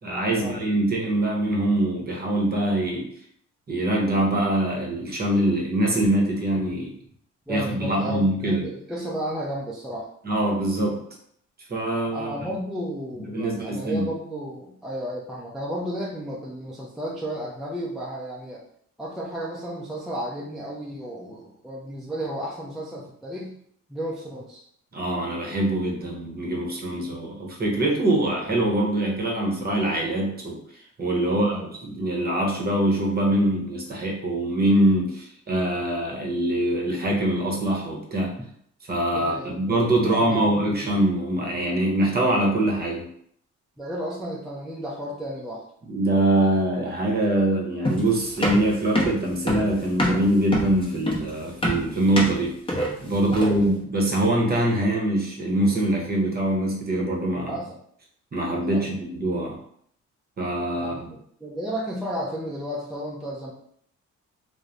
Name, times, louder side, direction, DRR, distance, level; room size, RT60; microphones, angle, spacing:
voice 1, 0.0-3.1 3.7-6.9 7.5-8.6 10.2-11.0 11.7-12.4 13.3-14.1 24.9-38.3 38.9-43.1 45.9-52.5 53.0-57.6 58.3-59.6 60.4-61.2, right 1 dB, 30° right, 0 dB, 0.8 m, -24 dB
voice 2, 7.5-10.1 12.1-18.6 19.0-23.5 23.9-24.7 31.3-31.6 39.1-40.9 43.8-45.6 53.3-53.7 57.4-57.7 58.6-58.8 60.8-63.5, equal, ahead, -5 dB, 0.4 m, -33 dB
sound 1, 47.8-53.7, equal, 20° left, 0.8 m, -26 dB
3.0 x 2.1 x 2.5 m, 0.66 s
cardioid pair, 90°, 30 cm